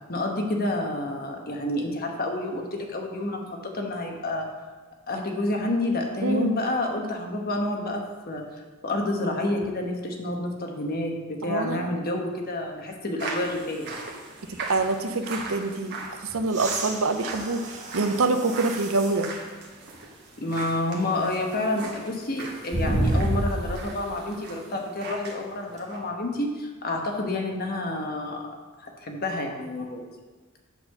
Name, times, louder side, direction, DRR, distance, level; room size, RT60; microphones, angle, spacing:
voice 1, 0.1-4.5 5.1-8.4 8.8-14.0 20.4-28.5 29.0-30.0, left 1 dB, 45° left, 2 dB, 1.2 m, -29 dB
voice 2, 6.2-6.5 11.4-11.9 14.7-16.0 16.3-19.3, right 3 dB, 75° right, 8 dB, 0.7 m, -25 dB
sound 1, 13.2-25.4 25.7-26.0, right 3 dB, 50° right, 1.6 m, -40 dB
sound 2, 16.5-19.2 19.9-20.0 22.7-23.9 25.8-25.9, right 1 dB, 35° right, 1.3 m, -29 dB
8.4 x 4.2 x 6.5 m, 1.4 s
head